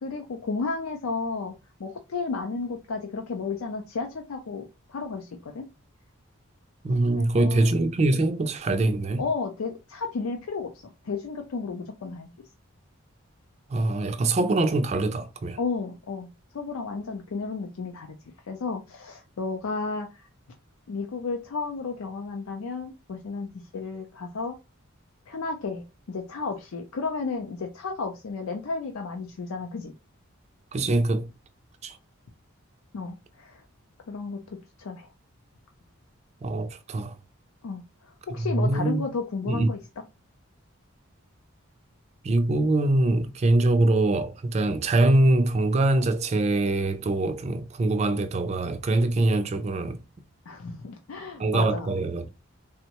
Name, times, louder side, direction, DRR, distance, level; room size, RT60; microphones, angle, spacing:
voice 1, 0.0-5.7 7.1-7.8 9.2-10.7 11.0-12.3 15.6-18.2 18.5-20.3 20.9-24.6 25.3-29.9 32.9-33.6 34.1-35.1 37.6-39.8 50.5-51.9, left 4 dB, 80° left, 0.4 m, -33 dB
voice 2, 6.8-9.2 13.7-15.6 30.7-31.3 31.8-32.0 36.4-37.1 38.5-39.1 39.5-39.7 42.2-50.0 51.4-52.3, right 2 dB, 30° right, 0.3 m, -23 dB
3.5 x 2.1 x 2.8 m
head